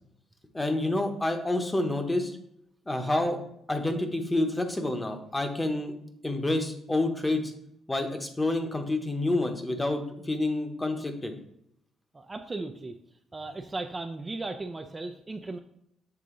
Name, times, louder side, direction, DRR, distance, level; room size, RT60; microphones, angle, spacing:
voice 1, 0.5-2.4 2.9-3.4 3.7-5.9 6.2-7.5 7.9-11.3, left 2 dB, 15° left, 6 dB, 0.9 m, -28 dB
voice 2, 12.1-13.0 13.3-15.6, right 2 dB, 25° right, 5 dB, 0.4 m, -36 dB
7.0 x 3.7 x 3.8 m, 0.74 s
cardioid pair, 90°, 0 cm